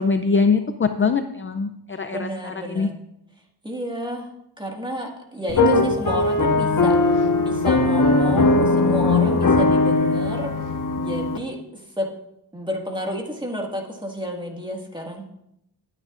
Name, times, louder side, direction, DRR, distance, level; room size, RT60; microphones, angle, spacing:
voice 1, 0.0-2.9, left 4 dB, 30° left, 8 dB, 0.5 m, -22 dB
voice 2, 2.1-3.0 3.6-4.3 4.6-10.5 11.0-12.1 12.5-15.2, equal, 10° right, 0 dB, 1.8 m, -31 dB
sound 1, 5.5-11.4, left 2 dB, 50° left, 1.4 m, -19 dB
19.5 x 9.0 x 2.5 m, 0.80 s
wide cardioid pair, 105°, 42 cm